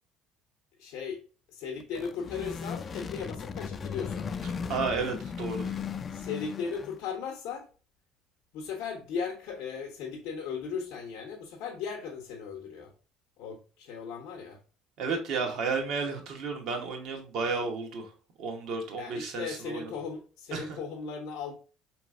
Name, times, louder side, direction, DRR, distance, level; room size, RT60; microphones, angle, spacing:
voice 1, 0.8-1.2 1.5-4.3 6.1-7.7 8.5-12.9 13.4-14.6 19.0-21.5, left 6 dB, 70° left, 0.6 m, -37 dB
sound 1, 1.8-7.1, left 6 dB, 40° left, 0.3 m, -37 dB
voice 2, 4.7-5.8 15.0-18.1 18.4-19.9 20.5-20.8, right 4 dB, 65° right, 1.0 m, -32 dB
4.5 x 2.9 x 2.4 m
hypercardioid pair, 65°, 0 cm